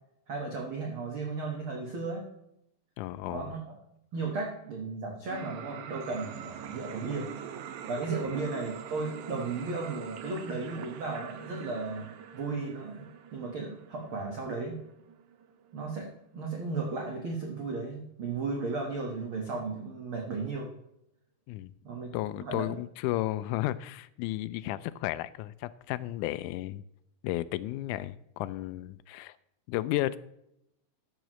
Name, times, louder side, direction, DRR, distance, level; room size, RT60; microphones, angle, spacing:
voice 1, 0.3-2.3 3.3-3.8 4.1-7.3 7.9-13.1 13.3-14.8 15.7-20.7 21.8-22.1 22.4-22.8, right 3 dB, 55° right, 0 dB, 1.6 m, -35 dB
voice 2, 3.0-3.5 21.5-21.7 22.1-26.8 27.2-29.4 29.7-30.2, left 15 dB, 85° left, 13 dB, 1.8 m, -33 dB
sound 1, 5.3-16.2 16.7-16.8, right 8 dB, 70° right, 2.0 m, -44 dB
14.0 x 9.0 x 3.1 m, 0.80 s
omnidirectional pair, 4.1 m